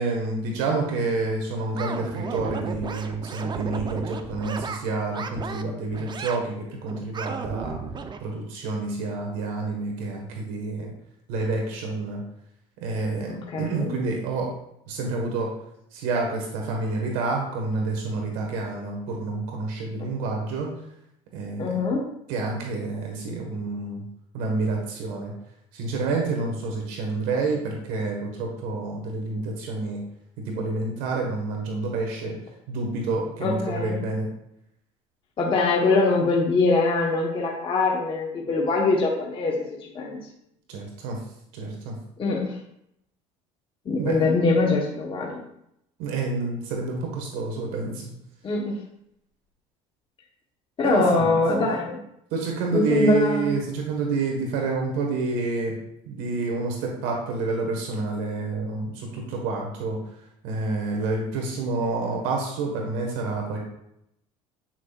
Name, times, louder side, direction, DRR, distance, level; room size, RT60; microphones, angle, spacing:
voice 1, 0.0-7.8 8.2-10.9 11.3-12.2 12.8-14.5 14.9-15.5 15.9-20.7 21.3-21.8 22.3-24.0 24.3-25.3 25.7-30.0 30.4-32.4 32.7-34.3 40.7-41.2 41.5-42.0 44.0-44.5 46.0-48.1 50.8-51.4 52.3-55.7 56.1-60.0 60.4-63.6, right 3 dB, 75° right, 1 dB, 1.6 m, -28 dB
sound 1, 1.8-4.8 5.1-5.6 5.9-6.4 6.9-8.2, right 5 dB, 30° right, 0.7 m, -34 dB
voice 2, 13.3-14.0 21.6-22.0 33.4-34.0 35.4-40.2 42.2-42.6 43.8-45.4 48.4-48.8 50.8-52.0 52.7-53.6, left 3 dB, 35° left, -2 dB, 1.2 m, -23 dB
8.2 x 6.0 x 2.5 m, 0.78 s
supercardioid pair, 85°, 15 cm